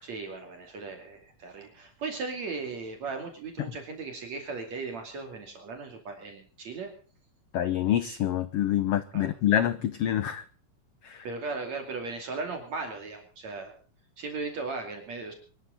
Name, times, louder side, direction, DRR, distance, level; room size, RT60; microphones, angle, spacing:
voice 1, 0.0-6.9 9.1-9.3 11.2-13.7 14.2-15.3, right 4 dB, 55° right, 4 dB, 3.7 m, -37 dB
voice 2, 7.5-10.4 11.0-11.2, left 11 dB, 85° left, 13 dB, 1.3 m, -26 dB
24.0 x 13.5 x 4.0 m, 0.41 s
omnidirectional pair, 3.9 m